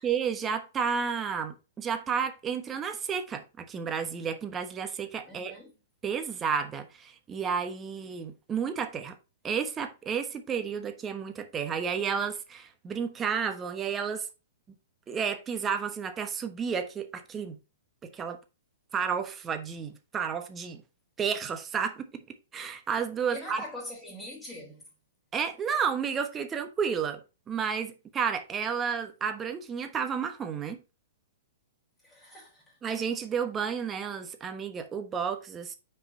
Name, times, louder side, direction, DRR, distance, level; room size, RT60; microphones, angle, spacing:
voice 1, 0.0-5.6 6.0-9.2 9.4-14.3 15.1-17.6 18.0-18.4 18.9-20.8 21.2-22.1 22.5-23.6 25.3-27.2 27.5-30.8 32.8-35.7, right 6 dB, 20° right, 1.1 m, -31 dB
voice 2, 5.3-5.7 23.3-24.8 32.0-32.6, left 1 dB, 10° left, 3.6 m, -42 dB
6.1 x 4.7 x 4.2 m
hypercardioid pair, 120°, 0 cm